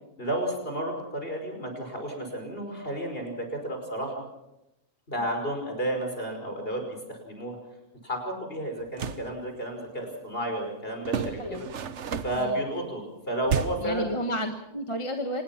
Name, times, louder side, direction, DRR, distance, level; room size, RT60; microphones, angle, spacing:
voice 1, 0.2-4.1 5.1-7.6 8.0-11.7 12.2-14.2, right 1 dB, 45° left, 3 dB, 5.6 m, -32 dB
sound 1, 8.8-9.3 11.0-12.5 13.5-14.0, right 7 dB, 60° right, 1.3 m, -31 dB
voice 2, 13.8-15.4, equal, 25° left, 5 dB, 1.4 m, -31 dB
26.0 x 20.0 x 6.0 m, 0.89 s
omnidirectional pair, 1.4 m